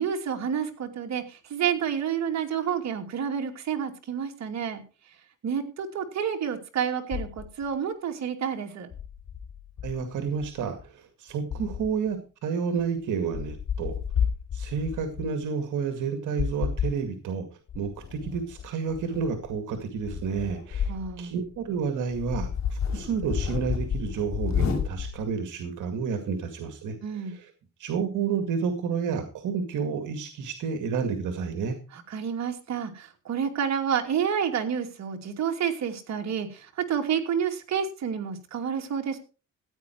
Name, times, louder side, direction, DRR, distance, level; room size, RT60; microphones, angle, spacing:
voice 1, 0.0-4.8 5.4-8.9 20.9-21.3 27.0-27.3 31.9-39.2, right 8 dB, 65° right, 4 dB, 2.7 m, -29 dB
sound 1, 7.1-7.7 8.9-10.9 11.5-12.1 12.8-12.9 13.3-15.3 16.4-17.0 17.7-21.2 21.5-21.6 22.1-25.3, left 7 dB, 60° left, 4.9 m, -31 dB
voice 2, 9.8-14.0 14.5-17.5 17.7-27.5 27.8-31.8, right 6 dB, 80° right, 7 dB, 2.2 m, -30 dB
15.5 x 9.3 x 4.5 m, 0.34 s
cardioid pair, 90°, 30 cm